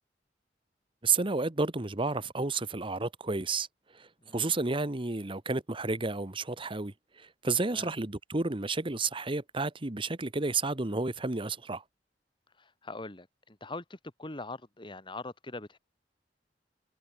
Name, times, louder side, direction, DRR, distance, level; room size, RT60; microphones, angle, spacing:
voice 1, 1.0-3.7 3.9-4.1 4.3-11.8, right 3 dB, 30° right, 1.2 m, -31 dB
voice 2, 12.6-15.8, left 2 dB, 30° left, 2.1 m, -42 dB
head